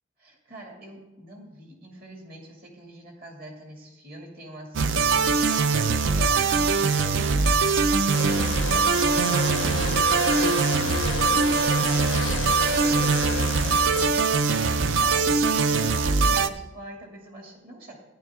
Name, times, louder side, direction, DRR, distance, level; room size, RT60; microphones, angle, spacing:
voice 1, 0.2-6.5 6.7-14.0 14.5-18.0, right 1 dB, 50° right, 0 dB, 2.4 m, -45 dB
sound 1, 4.7-16.5, right 4 dB, 80° right, 0.6 m, -22 dB
sound 2, 8.1-14.1, left 6 dB, 90° left, 0.5 m, -31 dB
14.0 x 10.5 x 3.6 m, 1.0 s
head